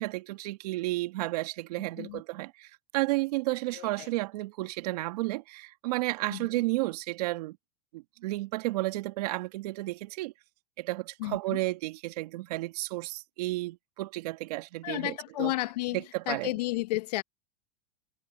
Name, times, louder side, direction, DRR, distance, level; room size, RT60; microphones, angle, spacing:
voice 1, 0.0-7.6 7.9-10.3 10.8-15.1 15.4-15.5 15.9-16.5, right 19 dB, 70° right, 2.2 m, -32 dB
voice 2, 3.7-4.1 6.3-6.5 11.2-11.6 14.8-17.2, left 18 dB, 75° left, 1.2 m, -32 dB
supercardioid pair, 120°, 21 cm